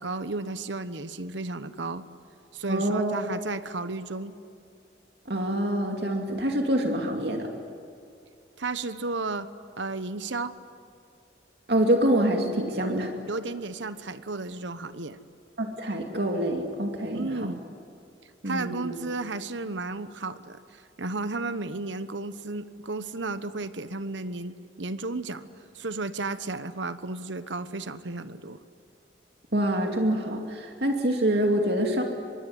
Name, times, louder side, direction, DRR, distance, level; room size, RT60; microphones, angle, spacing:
voice 1, 0.0-2.0 2.5-4.3 8.6-9.5 9.8-10.6 13.3-15.2 17.1-17.6 18.4-25.5 25.7-28.6, right 3 dB, 80° right, 12 dB, 1.2 m, -33 dB
voice 2, 2.7-3.2 5.3-7.5 11.7-13.1 15.6-17.5 18.4-19.0 29.5-32.0, right 1 dB, 60° right, 2 dB, 2.6 m, -26 dB
25.5 x 22.0 x 9.7 m, 2.4 s
head